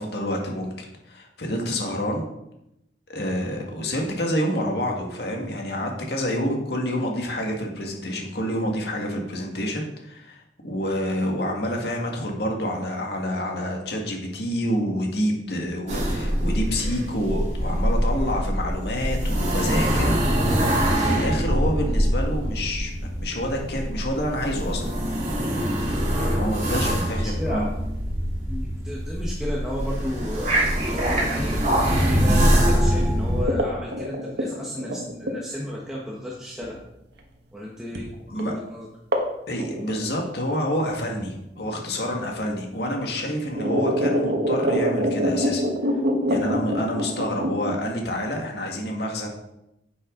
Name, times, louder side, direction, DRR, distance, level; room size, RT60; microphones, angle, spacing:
voice 1, 0.0-2.2 3.1-20.6 20.9-24.9 26.1-27.7 38.3-38.5 39.5-45.6 46.3-49.3, equal, 70° left, 1 dB, 1.9 m, -28 dB
sound 1, 15.9-33.4, equal, 40° right, 3.0 m, -24 dB
voice 2, 26.5-27.7 28.5-36.8 37.5-38.9, left 1 dB, 5° right, -5 dB, 1.3 m, -33 dB
sound 2, 33.5-35.9 36.6-36.7 38.0-38.1 38.4-38.5 39.1-39.4 39.6-40.4 41.6-41.7 42.6-42.7 43.2-47.7, equal, 80° right, 1.6 m, -25 dB
10.5 x 8.2 x 3.9 m, 0.85 s
head